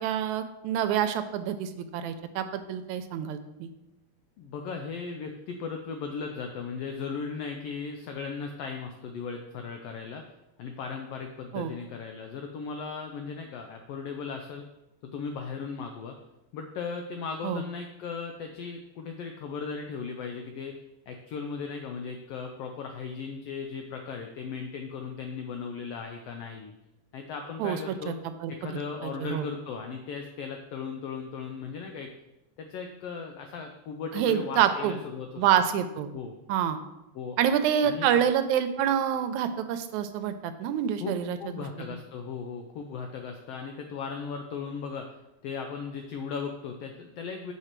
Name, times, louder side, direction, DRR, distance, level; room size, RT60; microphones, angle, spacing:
voice 1, 0.0-3.7 11.5-11.7 17.4-17.6 27.6-27.8 28.1-28.7 29.0-29.5 34.1-35.0 35.4-36.1 36.5-36.8 37.4-41.7, right 9 dB, 80° right, 10 dB, 1.9 m, -27 dB
voice 2, 4.4-10.2 10.6-14.6 15.1-16.2 16.5-20.7 21.1-26.7 27.1-28.1 28.5-32.1 32.6-35.6 36.1-36.4 37.1-37.4 37.8-38.1 41.0-45.1 45.4-47.5, left 5 dB, 85° left, 4 dB, 1.4 m, -37 dB
6.4 x 5.8 x 4.4 m, 0.95 s
omnidirectional pair, 3.4 m